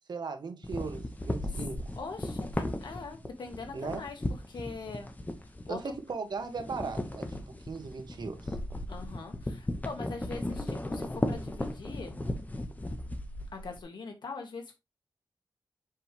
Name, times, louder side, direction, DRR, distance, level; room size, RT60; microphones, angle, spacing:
voice 1, 0.1-1.8 3.7-4.0 5.7-8.6, right 4 dB, 75° right, 1.5 m, -38 dB
sound 1, 0.6-6.1 6.4-13.8, left 1 dB, 20° left, 1.2 m, -36 dB
voice 2, 1.9-4.2 4.5-5.1 5.7-5.8 8.9-12.2 13.5-14.8, left 4 dB, 85° left, 1.7 m, -42 dB
7.5 x 4.8 x 3.4 m
wide cardioid pair, 95°, 8 cm